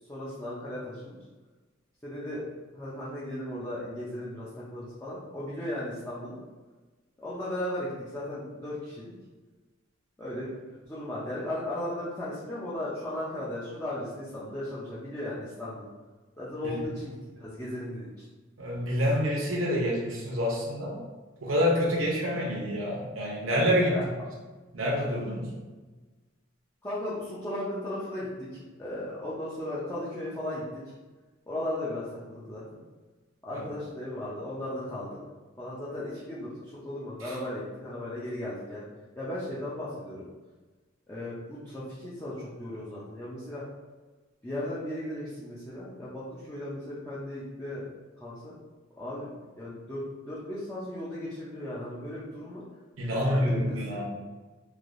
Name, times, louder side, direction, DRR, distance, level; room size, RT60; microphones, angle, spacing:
voice 1, 0.1-1.2 2.0-2.4 2.7-6.4 7.2-9.1 10.2-15.9 16.4-18.1 23.9-24.1 26.8-30.6 31.5-32.6 33.4-35.1 35.6-38.8 39.2-40.3 41.1-43.6 44.4-47.9 48.2-48.6 49.0-49.3 49.6-52.6 53.3-54.0, left 1 dB, 10° left, -9 dB, 0.5 m, -36 dB
voice 2, 18.6-21.0 21.4-24.0 24.7-25.5 33.5-33.6 37.3-37.4 53.0-54.0, equal, 75° right, -4 dB, 0.8 m, -27 dB
3.2 x 2.7 x 2.5 m, 1.3 s
head